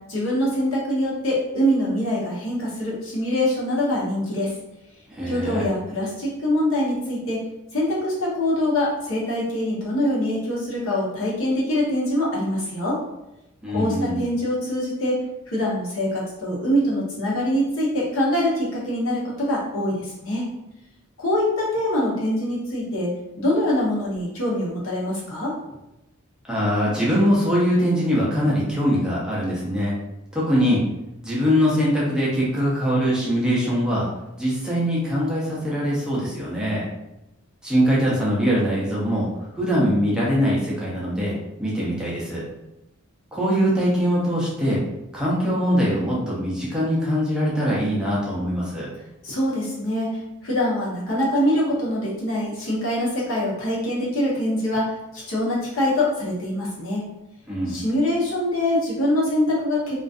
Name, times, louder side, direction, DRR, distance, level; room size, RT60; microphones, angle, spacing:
voice 1, 0.1-4.5 5.2-7.4 7.7-13.0 13.7-15.2 15.5-20.5 21.2-23.1 23.4-25.5 49.2-57.0 57.7-59.9, left 1 dB, 65° left, -5 dB, 0.9 m, -24 dB
voice 2, 5.1-5.7 13.6-14.2 26.5-29.9 30.3-30.8 31.2-34.1 34.4-36.8 37.6-39.3 39.5-42.4 43.3-44.8 45.1-48.9 57.5-57.8, equal, 5° right, -7 dB, 0.5 m, -22 dB
2.4 x 2.3 x 2.4 m, 0.90 s
head